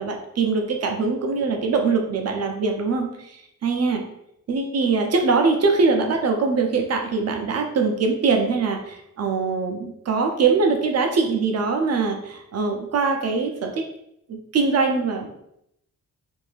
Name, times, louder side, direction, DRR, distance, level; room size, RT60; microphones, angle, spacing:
voice 1, 0.0-4.0 4.5-13.8 14.3-15.3, right 4 dB, 50° right, 3 dB, 0.6 m, -22 dB
2.6 x 2.6 x 3.3 m, 0.77 s
cardioid pair, 100°, 34 cm